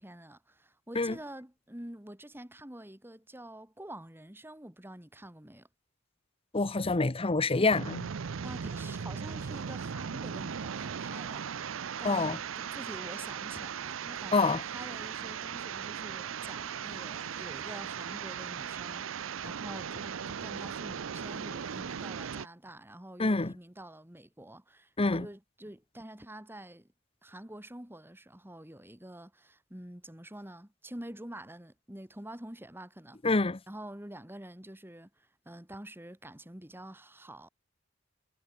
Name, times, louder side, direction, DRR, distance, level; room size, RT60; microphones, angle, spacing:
voice 1, 0.0-5.7 8.3-11.5 12.0-26.9 27.2-33.2 33.7-37.5, right 1 dB, 10° right, 2.3 m, -47 dB
voice 2, 6.5-8.1 12.0-12.4 14.3-14.6 23.2-23.5 25.0-25.3 33.2-33.6, left 3 dB, 30° left, 0.8 m, -26 dB
sound 1, 7.7-22.5, right 7 dB, 80° right, 0.6 m, -38 dB
head